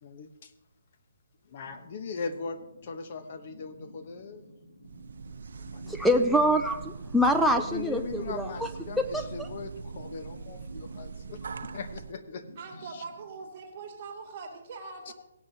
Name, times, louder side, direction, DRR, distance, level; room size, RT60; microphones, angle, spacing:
voice 1, 0.0-0.5 1.5-4.4 5.7-6.6 7.6-12.5 12.9-13.0 15.1-15.2, left 5 dB, 40° left, 8 dB, 1.0 m, -40 dB
sound 1, 1.6-14.3, equal, 85° left, 3.8 m, -54 dB
sound 2, 4.8-12.1, right 5 dB, 70° right, 0.7 m, -41 dB
voice 2, 5.9-8.7 9.1-9.2, equal, ahead, 2 dB, 0.4 m, -25 dB
voice 3, 12.6-15.1, right 4 dB, 35° right, -2 dB, 2.5 m, -42 dB
17.0 x 9.9 x 2.8 m, 0.92 s
hypercardioid pair, 165°, 0 cm